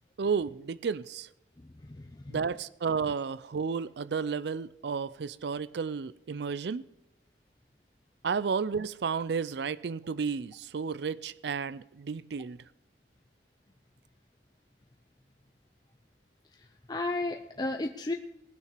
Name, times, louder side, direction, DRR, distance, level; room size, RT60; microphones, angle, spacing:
voice 1, 0.2-1.3 2.3-6.9 8.2-12.6, right 5 dB, 65° right, 0.4 m, -32 dB
voice 2, 1.6-2.4 16.5-18.1, left 2 dB, 20° left, 0.6 m, -34 dB
19.0 x 6.5 x 6.6 m
head